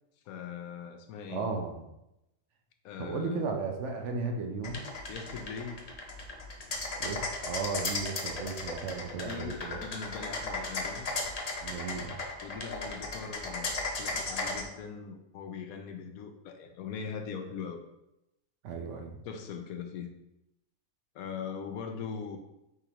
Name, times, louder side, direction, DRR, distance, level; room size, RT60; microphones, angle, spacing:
voice 1, 0.3-1.5 2.8-3.5 5.1-5.8 9.2-11.1 12.4-17.8 19.2-20.1 21.1-22.4, left 6 dB, 90° left, 6 dB, 1.1 m, -40 dB
voice 2, 1.3-1.9 3.0-4.8 7.0-9.9 11.6-12.1 18.6-19.2, right 4 dB, 65° right, 3 dB, 0.9 m, -35 dB
sound 1, 4.6-14.6, left 3 dB, 55° left, 0.4 m, -35 dB
4.8 x 3.4 x 2.9 m, 0.87 s
omnidirectional pair, 1.5 m